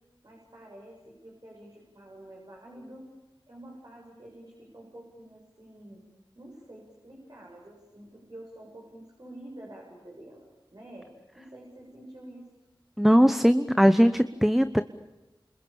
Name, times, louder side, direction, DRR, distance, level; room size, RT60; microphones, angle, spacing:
voice 1, 0.2-3.1 3.5-6.0 6.3-12.5, right 1 dB, 50° right, -1 dB, 7.5 m, -48 dB
voice 2, 13.0-14.8, equal, 5° right, 11 dB, 1.0 m, -20 dB
29.0 x 28.0 x 7.2 m, 1.0 s
wide cardioid pair, 50°, 9 cm